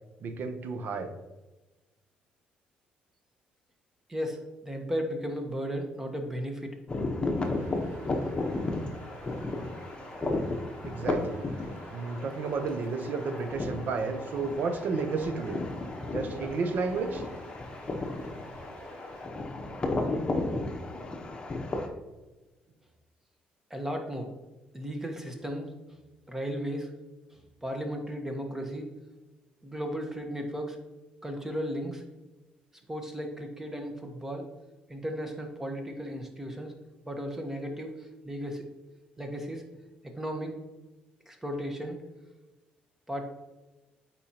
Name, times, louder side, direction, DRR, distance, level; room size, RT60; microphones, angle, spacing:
voice 1, 0.2-1.1 10.8-11.4 11.9-15.6 16.0-17.2, right 4 dB, 60° right, 8 dB, 0.7 m, -32 dB
voice 2, 4.1-6.7 23.7-24.3 24.7-25.7 26.3-26.9 27.6-28.9 29.6-30.8 31.2-32.0 32.9-34.5 34.9-36.8 37.0-38.6 39.2-39.6 40.2-40.6 41.3-42.0 43.1-43.2, equal, 10° right, 4 dB, 1.2 m, -35 dB
sound 1, 6.9-21.9, left 2 dB, 25° left, 1.0 m, -34 dB
sound 2, 7.3-19.3, right 3 dB, 85° right, 1.1 m, -52 dB
8.5 x 4.3 x 2.9 m, 1.1 s
cardioid pair, 85°, 3 cm